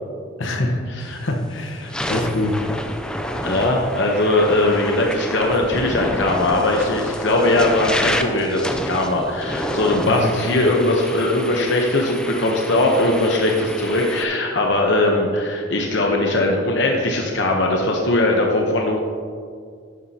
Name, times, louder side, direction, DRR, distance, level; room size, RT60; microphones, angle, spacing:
voice 1, 0.4-0.9 1.1-2.6 10.1-10.3, left 1 dB, 85° left, 3 dB, 1.1 m, -24 dB
sound 1, 1.1-1.3 1.8-14.2, left 1 dB, 5° left, 0.4 m, -29 dB
voice 2, 3.4-19.0, left 2 dB, 70° left, 0 dB, 0.9 m, -20 dB
11.5 x 9.3 x 2.9 m, 2.2 s
head